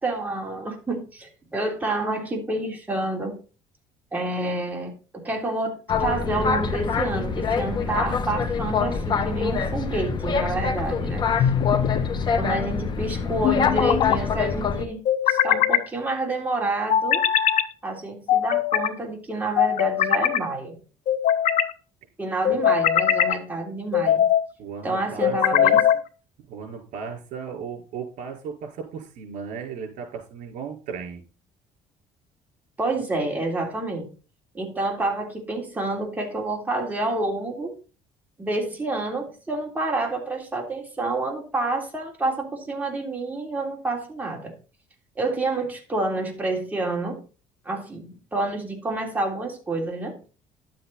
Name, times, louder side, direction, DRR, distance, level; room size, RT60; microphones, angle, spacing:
voice 1, 0.0-3.4 4.1-4.9 5.2-11.3 12.4-17.2 17.8-20.8 22.2-24.2 24.8-25.8 32.8-34.1 34.5-37.7 38.4-44.5 45.2-47.2 47.6-50.2, right 2 dB, 10° right, 0 dB, 3.4 m, -28 dB
Boat Water vehicle, 5.9-14.9, left 5 dB, 35° left, 1.3 m, -25 dB
sound 1, 11.4-12.1 13.4-14.2 15.0-15.9 16.9-17.7 18.3-18.9 19.6-20.4 21.1-21.7 22.4-23.4 23.9-24.4 25.2-26.0, left 10 dB, 65° left, 1.0 m, -21 dB
voice 2, 24.6-25.8 26.5-31.2, right 6 dB, 75° right, 1 dB, 4.8 m, -35 dB
11.5 x 7.7 x 4.2 m, 0.35 s
cardioid pair, 135°, 13 cm